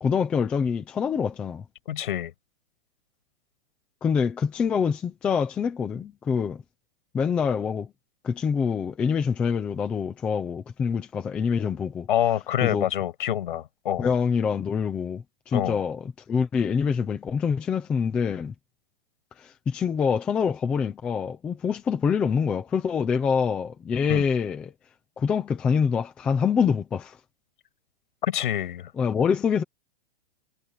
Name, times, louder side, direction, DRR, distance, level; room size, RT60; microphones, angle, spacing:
voice 1, 0.0-1.6 4.0-6.6 7.1-7.9 8.2-12.1 12.6-12.9 14.0-18.5 19.4-24.7 25.2-27.2 29.0-29.6, left 6 dB, 5° left, 0.4 m, -25 dB
voice 2, 1.9-2.3 12.1-14.1 15.5-15.8 24.1-24.2 28.2-28.9, left 11 dB, 60° left, 7.7 m, -26 dB
hypercardioid pair, 175°, 29 cm